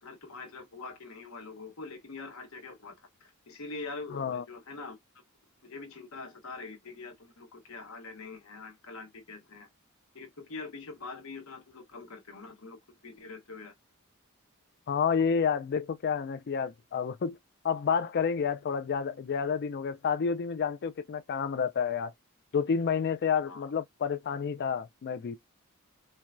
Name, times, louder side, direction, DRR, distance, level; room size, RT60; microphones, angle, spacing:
voice 1, 0.0-5.0 5.6-9.7 10.1-12.8 13.0-13.7 23.5-23.7, left 3 dB, 70° left, 1.0 m, -44 dB
voice 2, 4.1-4.4 14.9-17.4 17.6-22.1 22.5-25.4, left 6 dB, 50° left, 0.4 m, -29 dB
4.4 x 2.2 x 2.4 m
head